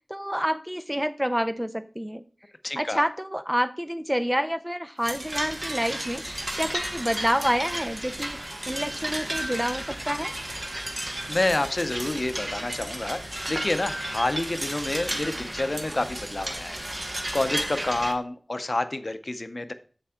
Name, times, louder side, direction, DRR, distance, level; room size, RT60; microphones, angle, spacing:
voice 1, 0.0-2.2 2.8-6.2 6.6-8.4 8.7-10.3, equal, 10° right, 10 dB, 0.5 m, -28 dB
voice 2, 2.6-3.0 11.3-19.7, left 2 dB, 55° left, 10 dB, 0.7 m, -29 dB
sound 1, 5.0-18.1, right 1 dB, 40° right, 1.3 m, -33 dB
7.5 x 6.9 x 3.7 m, 0.41 s
wide cardioid pair, 50°, 0 cm